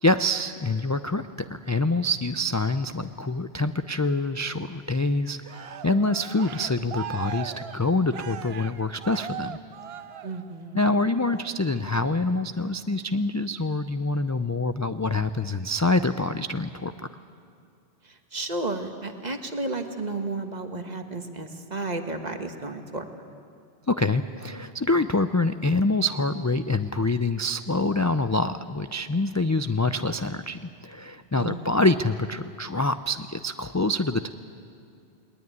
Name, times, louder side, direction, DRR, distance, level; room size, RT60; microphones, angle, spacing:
voice 1, 0.0-9.6 10.7-16.9 23.9-34.3, left 2 dB, 30° left, 9 dB, 0.3 m, -26 dB
Cheering, 5.4-10.7 11.1-11.5, right 8 dB, 70° right, 0.9 m, -39 dB
voice 2, 10.2-10.9 18.3-23.1 31.3-31.7, right 2 dB, 40° right, 6 dB, 1.5 m, -32 dB
20.5 x 20.5 x 9.6 m, 2.4 s
omnidirectional pair, 1.1 m